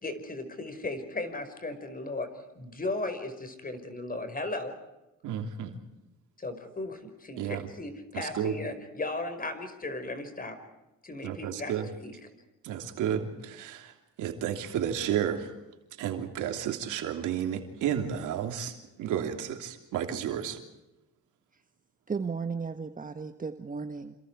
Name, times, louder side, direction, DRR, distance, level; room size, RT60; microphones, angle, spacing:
voice 1, 0.0-2.3 2.6-4.7 6.4-10.6 11.0-12.2, left 2 dB, 30° left, 9 dB, 5.3 m, -36 dB
voice 2, 5.2-5.7 7.4-7.6 8.1-8.5 11.2-11.9 12.6-15.5 16.0-20.6, right 9 dB, 90° right, 4 dB, 3.2 m, -32 dB
voice 3, 22.1-24.2, right 5 dB, 25° right, 7 dB, 1.4 m, -35 dB
28.0 x 27.5 x 4.8 m, 0.97 s
cardioid pair, 90°, 30 cm